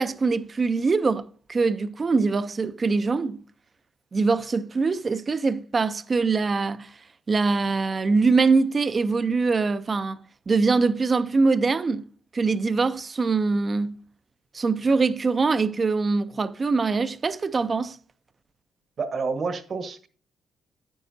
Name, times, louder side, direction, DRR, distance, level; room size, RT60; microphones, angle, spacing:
voice 1, 0.0-3.4 4.1-7.0 7.3-10.2 10.5-12.1 12.3-13.9 14.5-18.0, right 4 dB, 35° right, 0.5 m, -23 dB
voice 2, 19.0-20.1, right 4 dB, 50° right, 1.1 m, -29 dB
9.7 x 9.2 x 2.7 m
cardioid pair, 90°, 0 cm